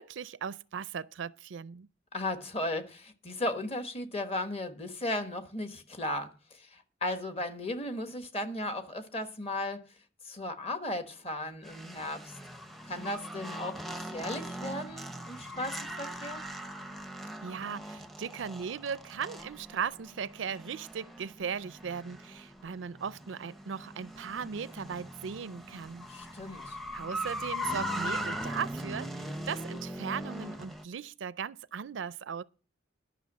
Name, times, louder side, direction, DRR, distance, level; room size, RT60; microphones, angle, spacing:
voice 1, 0.0-1.9 17.4-26.1 26.9-32.4, right 7 dB, 80° right, 0.4 m, -38 dB
voice 2, 2.1-9.8 10.2-12.3 12.8-16.4 26.1-26.8, left 1 dB, 30° left, 1.3 m, -36 dB
sound 1, 11.6-30.8, equal, ahead, 0.6 m, -40 dB
11.5 x 6.2 x 7.2 m
head